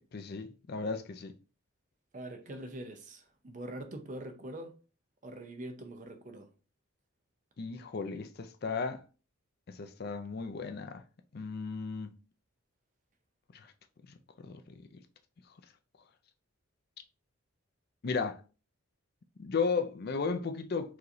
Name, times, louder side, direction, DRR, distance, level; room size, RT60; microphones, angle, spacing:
voice 1, 0.0-1.3 7.6-9.0 9.7-11.0 11.3-12.2 13.5-13.7 14.4-14.7 18.0-18.4 19.4-21.0, left 5 dB, 45° left, 0.4 m, -35 dB
voice 2, 2.1-4.8 5.2-6.5, right 1 dB, 35° right, 0.6 m, -43 dB
4.7 x 3.1 x 2.7 m
head